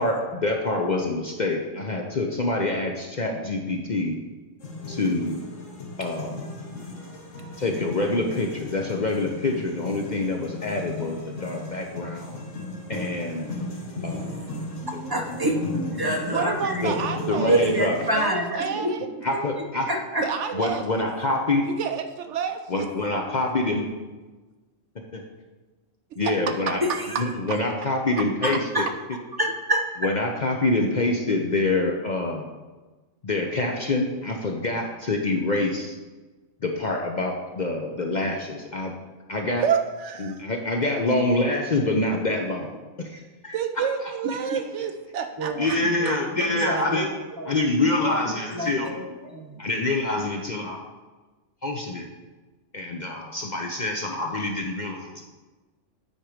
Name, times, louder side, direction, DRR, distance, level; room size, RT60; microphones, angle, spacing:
voice 1, 0.0-4.2 4.9-5.4 6.0-6.4 7.6-12.4 12.9-13.5 14.0-14.5 14.9-15.0 16.0-16.2 16.8-16.9 17.3-17.9 19.2-19.9 20.5-21.7 22.7-23.8 26.2-26.8 27.2-28.8 30.0-32.5 33.2-36.0 36.6-38.9 39.3-39.7 40.2-43.6 45.6-47.1 47.5-49.0 49.6-50.8 51.6-52.1 52.7-55.2, left 2 dB, 45° left, 1 dB, 0.6 m, -26 dB
sound 1, 4.6-18.1, left 2 dB, 65° left, 1.6 m, -36 dB
voice 2, 15.1-17.0 17.4-18.9 19.3-19.4 19.9-20.3 26.8-27.2 28.4-28.9 29.4-29.9 44.5-44.6 45.4-47.5 48.0-49.6, right 1 dB, 25° right, 2 dB, 0.6 m, -27 dB
voice 3, 16.3-17.6 18.1-19.1 20.2-21.1 21.8-22.9 26.7-27.0 27.5-27.6 39.6-40.4 43.5-45.8 46.1-46.2, right 7 dB, 70° right, 7 dB, 0.8 m, -29 dB
9.0 x 4.5 x 5.0 m, 1.3 s
omnidirectional pair, 1.4 m